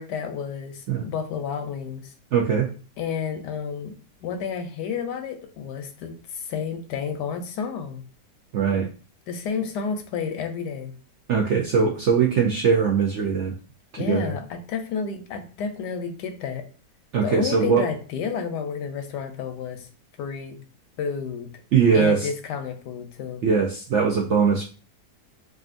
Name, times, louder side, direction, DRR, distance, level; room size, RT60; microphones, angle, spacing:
voice 1, 0.0-2.1 3.0-3.9 4.2-8.0 9.3-10.9 14.0-16.7 17.2-19.9 20.2-20.6 21.0-21.5 21.9-23.4, left 6 dB, 80° left, 6 dB, 1.3 m, -30 dB
voice 2, 2.3-2.7 8.5-8.9 11.3-13.5 13.9-14.3 17.1-17.9 21.7-22.3 23.4-24.6, right 6 dB, 70° right, -1 dB, 0.7 m, -21 dB
4.9 x 2.5 x 2.5 m, 0.37 s
omnidirectional pair, 1.8 m